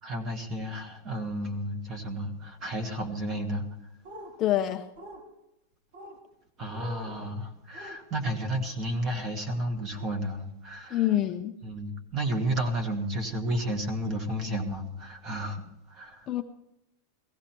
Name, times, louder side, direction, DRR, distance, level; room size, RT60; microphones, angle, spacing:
voice 1, 0.0-3.7 6.6-11.1 11.6-16.3, right 1 dB, 25° right, 7 dB, 1.6 m, -32 dB
sound 1, 4.0-4.3 5.0-5.2 5.9-6.2 6.7-7.2 7.7-8.0 10.0-10.1 11.0-11.3 12.5-12.7 13.5-13.6, equal, 65° right, 4.0 m, -45 dB
voice 2, 4.4-4.9 10.9-11.6 16.3-16.4, left 12 dB, 25° left, 6 dB, 0.5 m, -26 dB
17.5 x 14.5 x 4.5 m, 0.85 s
supercardioid pair, 175°, 0 cm